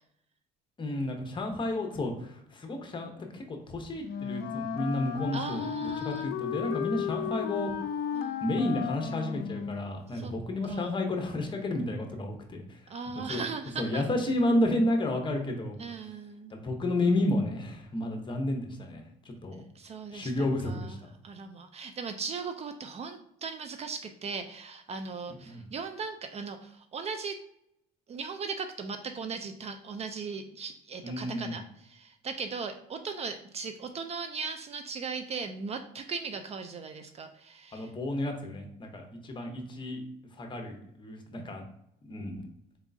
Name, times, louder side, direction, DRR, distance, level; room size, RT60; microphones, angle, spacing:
voice 1, 0.8-7.7 8.4-12.6 13.3-13.4 13.8-15.8 16.5-19.0 19.4-19.6 20.1-21.0 25.4-25.7 31.0-31.6 37.7-40.0 40.4-41.6 42.0-42.4, left 1 dB, 30° left, 3 dB, 0.8 m, -31 dB
Wind instrument woodwind instrument, 4.0-9.9, left 8 dB, 70° left, 0.5 m, -34 dB
voice 2, 5.3-6.3 8.1-8.4 10.1-10.3 10.6-10.9 12.9-14.0 15.8-16.5 19.5-21.0 21.2-27.4 28.1-37.9, right 5 dB, 40° right, 8 dB, 0.4 m, -38 dB
4.1 x 3.5 x 2.6 m, 0.76 s
cardioid pair, 110°, 17 cm